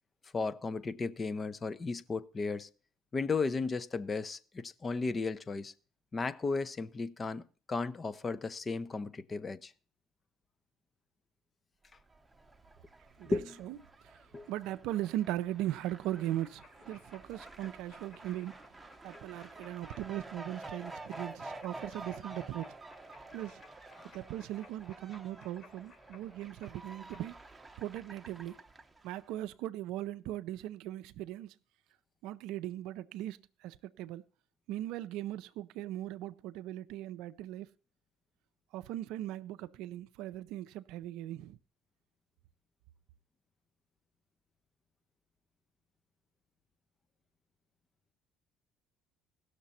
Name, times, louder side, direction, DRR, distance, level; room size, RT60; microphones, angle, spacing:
voice 1, 0.3-2.7 3.1-5.7 6.1-9.7 13.3-13.6 14.3-14.5 24.0-24.1, left 4 dB, 30° left, 0.6 m, -35 dB
Fowl, 12.0-29.3, right 2 dB, 15° right, 0.8 m, -50 dB
voice 2, 13.2-18.5 19.0-22.8 23.3-23.6 24.1-27.3 27.8-28.6 29.0-31.6 32.2-34.2 34.7-37.7 38.7-41.6, right 13 dB, 75° right, 0.4 m, -39 dB
sound 1, 16.1-27.2, left 4 dB, 50° left, 3.3 m, -61 dB
16.5 x 6.6 x 4.1 m
supercardioid pair, 75°, 0 cm